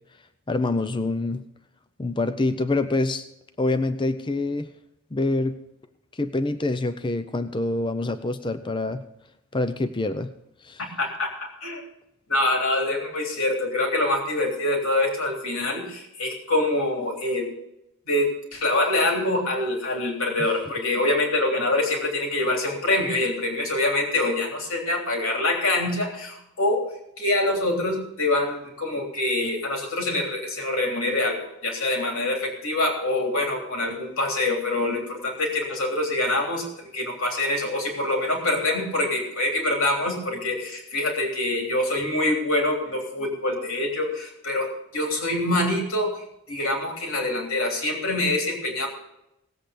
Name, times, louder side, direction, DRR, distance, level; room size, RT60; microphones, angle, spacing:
voice 1, 0.5-1.4 2.0-3.2 3.6-4.7 5.1-5.6 6.2-9.0 9.5-10.3 10.6-10.8, left 2 dB, 20° left, 10 dB, 0.6 m, -26 dB
voice 2, 11.0-11.8 12.3-17.5 18.1-26.9 27.2-48.9, left 2 dB, 65° left, 1 dB, 3.3 m, -25 dB
18.0 x 8.1 x 5.1 m, 0.83 s
head